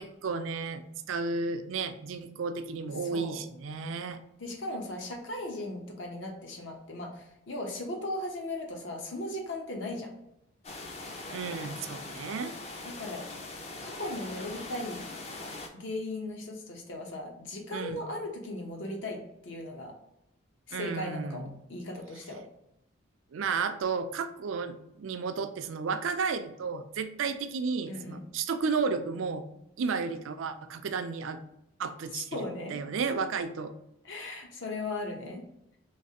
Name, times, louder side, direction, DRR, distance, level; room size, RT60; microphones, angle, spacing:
voice 1, 0.0-4.2 11.3-12.5 17.7-18.0 20.7-21.6 23.3-29.5 29.8-31.4 31.8-32.4 32.7-33.7, right 5 dB, 80° right, 10 dB, 0.4 m, -33 dB
voice 2, 3.0-3.4 4.4-10.1 12.8-13.3 13.8-15.1 15.7-19.9 20.7-22.4 27.9-28.2 32.3-32.8 34.0-35.5, left 1 dB, 70° left, 1 dB, 0.8 m, -37 dB
sound 1, 10.6-15.7, left 2 dB, 30° left, 0.4 m, -41 dB
3.2 x 3.2 x 2.8 m, 0.83 s
head